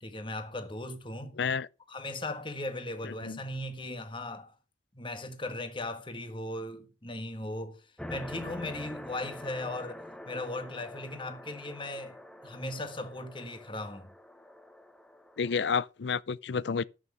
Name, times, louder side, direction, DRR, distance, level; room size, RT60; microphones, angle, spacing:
voice 1, 0.0-1.3 1.9-4.5 4.9-7.8 8.1-14.1, left 2 dB, 25° left, 1.5 m, -38 dB
voice 2, 1.4-1.7 3.0-3.4 15.4-16.8, left 6 dB, 65° left, 0.5 m, -30 dB
sound 1, 8.0-15.6, left 1 dB, 5° left, 0.8 m, -45 dB
12.5 x 6.2 x 5.4 m
head